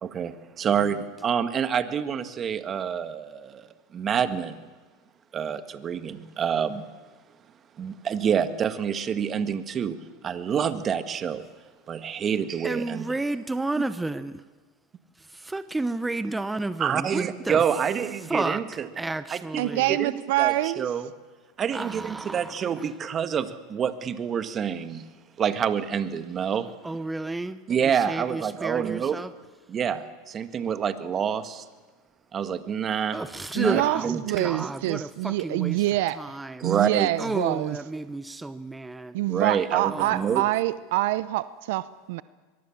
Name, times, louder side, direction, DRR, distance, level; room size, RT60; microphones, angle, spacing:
voice 1, 0.0-4.6 5.3-6.9 7.8-10.0 10.2-11.4 11.9-13.1 16.8-18.9 19.3-21.1 21.6-25.1 25.4-26.7 27.7-29.2 29.7-31.7 32.3-33.2 33.6-34.4 34.6-34.7 36.6-37.1 39.3-40.4, right 8 dB, 35° right, 10 dB, 1.7 m, -27 dB
voice 2, 12.6-14.4 15.2-17.7 18.2-18.6 19.0-20.0 21.7-22.9 26.8-29.3 33.1-35.8 36.1-36.7 37.2-39.2 39.9-40.5, right 2 dB, 10° right, 13 dB, 0.8 m, -32 dB
voice 3, 19.6-20.9 33.6-34.0 34.2-36.2 36.6-37.8 39.1-42.2, right 16 dB, 70° right, 16 dB, 0.6 m, -25 dB
23.0 x 22.5 x 7.4 m, 1.4 s
hypercardioid pair, 100°, 0 cm